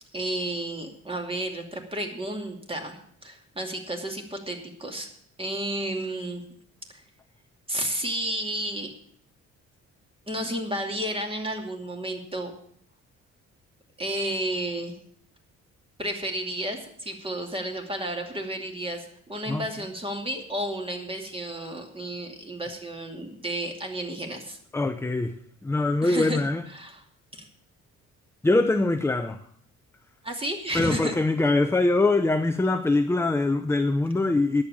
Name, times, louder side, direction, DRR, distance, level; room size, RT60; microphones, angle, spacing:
voice 1, 0.1-5.1 5.4-6.4 6.9-7.0 7.7-8.9 10.3-12.5 14.0-14.9 16.0-24.6 26.0-26.4 26.7-27.0 27.3-27.5 30.2-31.2, right 1 dB, 20° right, 2.6 m, -32 dB
voice 2, 24.7-25.3 25.6-26.6 28.4-29.4 30.7-34.6, left 2 dB, 10° left, 0.6 m, -23 dB
10.5 x 7.8 x 8.5 m
cardioid pair, 90°, 30 cm